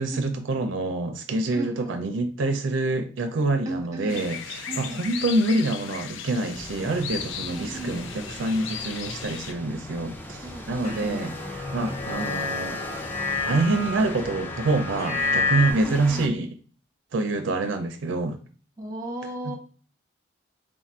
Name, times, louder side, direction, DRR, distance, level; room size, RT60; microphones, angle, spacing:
voice 1, 0.0-12.8 13.4-16.6 17.1-18.4 19.4-19.5, right 2 dB, 75° right, 6 dB, 0.5 m, -26 dB
voice 2, 1.5-2.0 3.6-4.2 4.7-5.0 7.5-8.0 10.4-11.2 15.8-16.3 18.8-19.6, right 1 dB, 15° right, 1 dB, 0.9 m, -35 dB
sound 1, 4.1-9.5, left 7 dB, 75° left, 0.4 m, -36 dB
sound 2, 6.5-16.3, left 1 dB, 10° left, 0.4 m, -38 dB
sound 3, 10.8-15.7, left 4 dB, 35° left, 0.9 m, -29 dB
3.8 x 2.5 x 4.1 m, 0.41 s
head